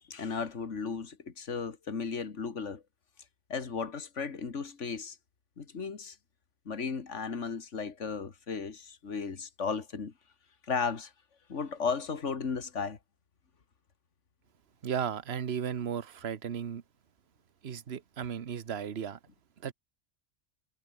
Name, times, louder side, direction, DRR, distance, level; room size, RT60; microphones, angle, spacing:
voice 1, 0.1-2.8 3.5-5.2 5.6-6.2 6.7-10.1 10.7-11.1 11.5-13.0, left 5 dB, 70° left, 2.3 m, -35 dB
voice 2, 14.8-16.8 17.6-19.2 19.6-19.7, right 8 dB, 55° right, 1.3 m, -35 dB
omnidirectional pair, 1.3 m